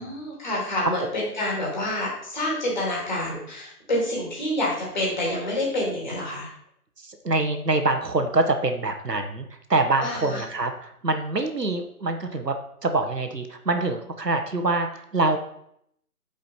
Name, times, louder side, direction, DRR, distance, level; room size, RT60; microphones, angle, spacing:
voice 1, 0.0-6.5 10.0-10.4, left 1 dB, 30° left, -4 dB, 2.8 m, -28 dB
voice 2, 7.0-12.5 12.8-15.4, right 2 dB, 85° right, 6 dB, 1.4 m, -25 dB
9.3 x 5.1 x 4.4 m, 0.71 s
figure-of-eight pair, 160°, 47 cm